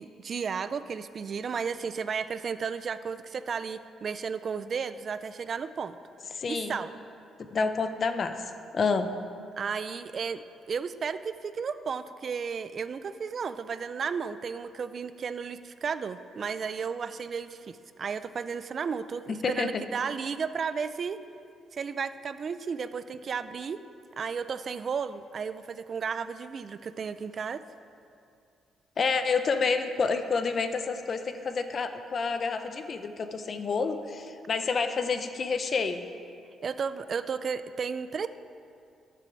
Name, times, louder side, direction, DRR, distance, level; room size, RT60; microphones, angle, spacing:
voice 1, 0.0-6.0 6.5-6.9 9.6-21.2 21.7-23.8 24.2-27.6 36.6-38.3, right 6 dB, 50° right, 13 dB, 0.4 m, -33 dB
voice 2, 6.4-6.8 7.5-8.4 8.7-9.1 19.3-19.8 29.0-36.1, left 4 dB, 45° left, 9 dB, 0.7 m, -29 dB
9.0 x 6.9 x 6.1 m, 2.5 s
cardioid pair, 90°, 0 cm